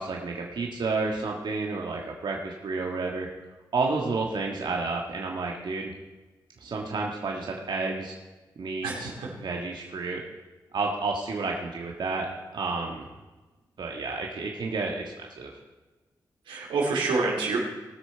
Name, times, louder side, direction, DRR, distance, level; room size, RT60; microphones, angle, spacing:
voice 1, 0.0-3.3 3.7-5.9 6.6-8.1 8.6-9.1 9.4-10.2 10.7-12.3 12.5-13.1 13.8-15.5, right 3 dB, 65° right, 0 dB, 1.6 m, -30 dB
voice 2, 8.8-9.3 16.5-17.6, right 3 dB, 90° right, -1 dB, 2.4 m, -27 dB
19.0 x 6.4 x 4.5 m, 1.2 s
supercardioid pair, 50°, 8 cm